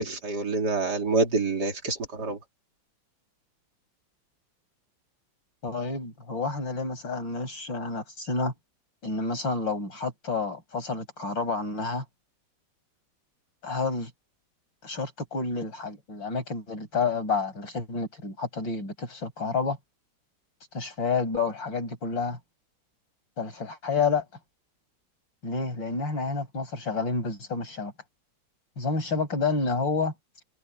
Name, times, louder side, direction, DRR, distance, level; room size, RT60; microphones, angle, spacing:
voice 1, 0.0-2.4, right 3 dB, 55° right, 3.6 m, -27 dB
voice 2, 5.6-8.5 9.0-12.0 13.6-14.1 14.8-19.8 20.7-22.4 23.4-24.2 25.4-27.9 28.8-30.1, left 4 dB, 70° left, 6.6 m, -29 dB
omnidirectional pair, 2.1 m